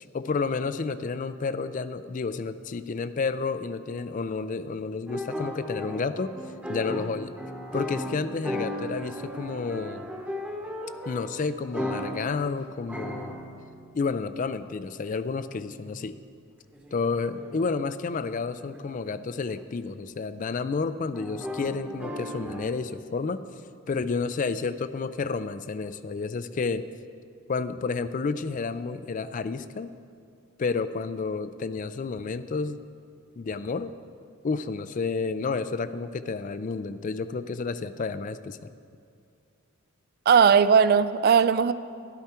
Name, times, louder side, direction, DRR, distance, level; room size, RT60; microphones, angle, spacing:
voice 1, 0.0-6.4 6.7-7.3 7.7-10.1 11.0-13.4 13.9-16.2 16.9-23.4 23.9-26.9 27.5-29.9 30.6-32.8 33.4-33.9 34.4-38.7, left 4 dB, 40° left, 13 dB, 0.3 m, -30 dB
sound 1, 5.1-11.4 11.7-12.4 12.8-13.9 14.5-15.1 15.8-16.1 16.7-17.8 18.6-19.2 19.5-19.6 19.9-20.0 21.1-22.7, equal, 5° right, 0.9 m, -36 dB
voice 2, 40.3-41.7, right 6 dB, 50° right, 14 dB, 0.3 m, -18 dB
12.0 x 11.0 x 4.4 m, 2.3 s
head